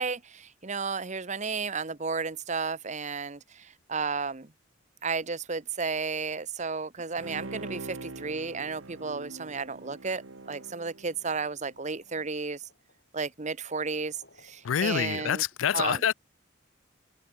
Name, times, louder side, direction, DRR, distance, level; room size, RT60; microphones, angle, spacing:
voice 1, 0.0-4.5 5.0-12.6 13.1-14.2 14.4-15.4 15.7-16.0, right 4 dB, 35° right, 1.1 m, -33 dB
Bowed string instrument, 7.2-11.8 12.2-12.3, right 2 dB, 90° right, 1.4 m, -43 dB
sound 1, 11.0-15.5, left 2 dB, 55° left, 7.8 m, -63 dB
voice 2, 14.6-16.1, left 9 dB, 85° left, 0.4 m, -26 dB
head